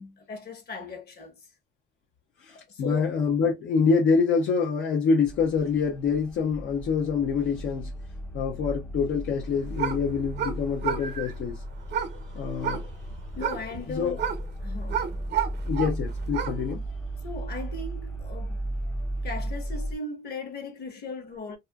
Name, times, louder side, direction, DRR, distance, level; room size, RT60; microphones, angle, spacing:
voice 1, 0.0-1.4 2.5-3.1 13.4-14.3 14.6-15.2 17.2-18.6 19.2-21.6, left 3 dB, 55° left, 1.1 m, -38 dB
voice 2, 2.4-7.9 8.3-11.6 12.3-12.8 13.9-14.2 15.7-16.8, left 5 dB, 75° left, 0.7 m, -26 dB
sound 1, 5.3-20.0, right 1 dB, 10° left, 0.3 m, -35 dB
sound 2, 9.4-16.7, right 8 dB, 60° right, 0.7 m, -33 dB
2.6 x 2.5 x 2.2 m
cardioid pair, 95°, 20 cm